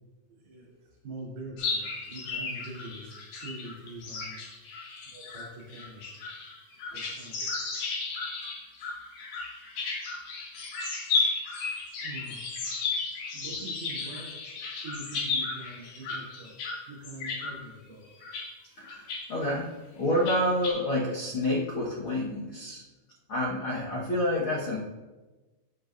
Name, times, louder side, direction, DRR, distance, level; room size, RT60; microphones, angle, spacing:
voice 1, 0.3-0.7 1.0-4.4 5.1-6.0 6.9-7.5 12.0-12.4 13.3-14.3 14.8-16.5 16.9-18.1, right 1 dB, 75° right, -6 dB, 5.0 m, -43 dB
sound 1, 1.6-16.8 17.0-17.5 18.1-18.4 18.8-19.2 19.5-19.6 20.1-20.7, left 4 dB, 90° left, 4.4 m, -34 dB
voice 2, 18.8-22.8 23.3-24.8, left 1 dB, 60° left, -6 dB, 1.4 m, -28 dB
16.5 x 7.8 x 2.6 m, 1.2 s
omnidirectional pair, 4.4 m